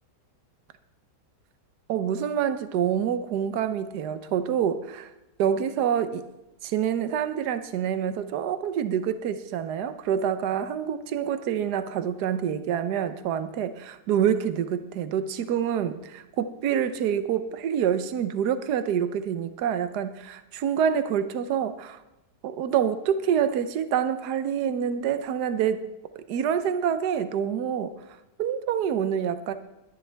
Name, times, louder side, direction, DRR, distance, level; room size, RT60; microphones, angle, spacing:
voice 1, 1.9-5.1 5.4-6.2 6.6-22.0 22.4-25.8 26.1-28.0 28.4-29.5, right 8 dB, 70° right, 11 dB, 1.4 m, -27 dB
20.5 x 10.5 x 3.4 m, 0.99 s
omnidirectional pair, 1.9 m